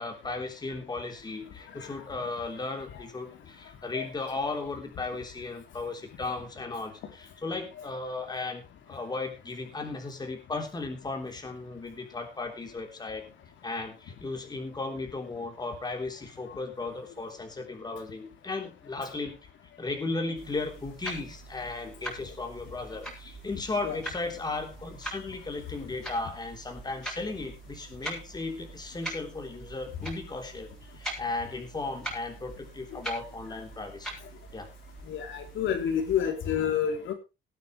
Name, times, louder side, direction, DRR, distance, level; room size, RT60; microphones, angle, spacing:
voice 1, 0.0-13.3 13.6-19.4 19.8-34.1 34.5-34.7, left 3 dB, 20° left, 4 dB, 3.5 m, -36 dB
sound 1, 20.3-36.3, right 2 dB, 5° left, 7.1 m, -43 dB
voice 2, 35.1-37.1, left 8 dB, 75° left, 5 dB, 3.2 m, -29 dB
19.0 x 9.5 x 3.2 m, 0.27 s
cardioid pair, 125°, 20 cm